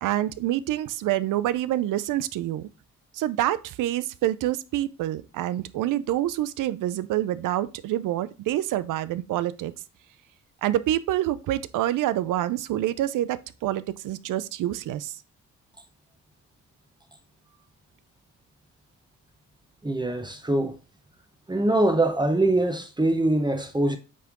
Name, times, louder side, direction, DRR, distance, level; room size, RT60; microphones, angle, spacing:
voice 1, 0.0-2.7 3.1-9.7 10.6-15.1, right 13 dB, 80° right, 0.5 m, -27 dB
voice 2, 19.8-20.8 21.5-24.0, right 2 dB, 15° right, 0.9 m, -23 dB
7.5 x 3.5 x 3.7 m
cardioid pair, 70°, 31 cm